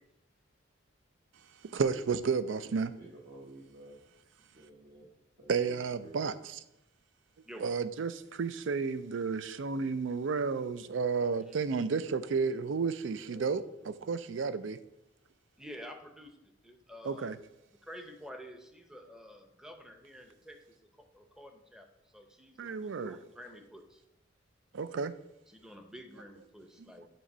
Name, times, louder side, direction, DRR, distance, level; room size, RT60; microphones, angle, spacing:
voice 1, 1.7-2.9 5.5-6.6 7.6-14.8 17.0-17.4 22.6-23.2 24.7-25.1 26.8-26.9, right 5 dB, 75° right, 0.4 m, -32 dB
voice 2, 3.0-4.1 4.5-5.1 5.4-6.2 13.1-13.9, right 1 dB, 45° right, 1.2 m, -52 dB
voice 3, 15.6-17.3 17.8-24.0 25.5-27.1, equal, 5° right, 0.7 m, -50 dB
7.5 x 3.0 x 5.4 m
head